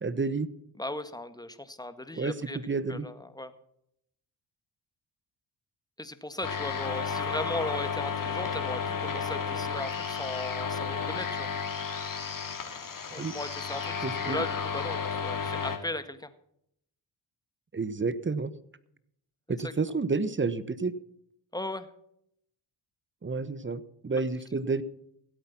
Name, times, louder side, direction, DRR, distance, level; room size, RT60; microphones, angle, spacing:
voice 1, 0.0-0.5 2.1-2.3 2.7-3.1 13.2-13.3 14.0-14.5 17.7-18.5 19.5-20.9 23.2-24.8, right 4 dB, 25° right, 16 dB, 1.1 m, -30 dB
voice 2, 0.8-2.6 2.9-3.5 6.0-11.5 13.1-16.3 19.6-19.7 21.5-21.9, left 1 dB, 10° left, 11 dB, 1.7 m, -37 dB
sound 1, 6.4-15.8, left 6 dB, 45° left, 2.8 m, -33 dB
16.5 x 8.8 x 5.8 m, 0.72 s
supercardioid pair, 55°, 46 cm